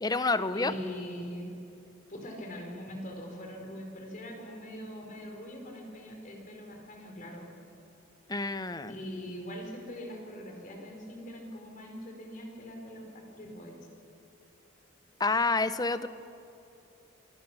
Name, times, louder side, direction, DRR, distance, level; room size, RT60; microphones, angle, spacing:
voice 1, 0.0-0.7 8.3-9.0 15.2-16.1, left 3 dB, 20° left, 13 dB, 0.7 m, -28 dB
voice 2, 0.5-1.5 2.1-7.5 8.9-13.8, equal, 40° left, 1 dB, 4.5 m, -42 dB
26.5 x 21.0 x 6.2 m, 2.8 s
head